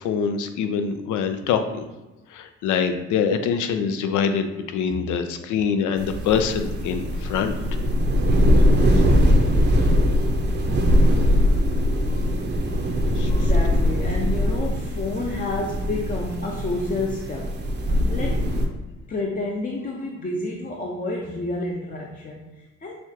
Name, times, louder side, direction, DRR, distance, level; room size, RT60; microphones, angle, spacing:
voice 1, 0.0-1.9 2.3-7.6 8.9-9.0 13.2-13.3, left 6 dB, 80° left, 8 dB, 0.5 m, -24 dB
sound 1, 6.0-18.7, equal, 35° right, 0.6 m, -21 dB
voice 2, 11.1-12.8 13.0-18.5 19.1-22.9, left 2 dB, 30° left, -1 dB, 0.6 m, -31 dB
6.3 x 2.4 x 2.8 m, 1.1 s
cardioid pair, 90°, 30 cm